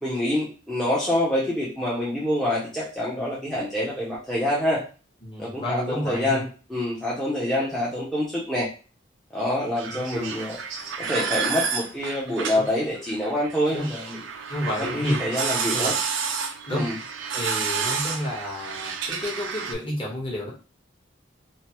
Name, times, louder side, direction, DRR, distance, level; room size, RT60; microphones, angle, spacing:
voice 1, 0.0-4.8 5.4-8.7 9.3-10.6 11.0-14.2 14.8-15.9 16.7-16.9, left 1 dB, ahead, -7 dB, 0.6 m, -26 dB
voice 2, 5.2-6.4 9.9-10.3 12.5-12.6 13.7-13.9 14.5-15.9 16.7-16.9 17.3-20.5, left 1 dB, 25° left, -3 dB, 1.0 m, -30 dB
sound 1, 9.8-19.7, right 6 dB, 80° right, 0.4 m, -30 dB
3.2 x 2.0 x 2.9 m, 0.36 s
head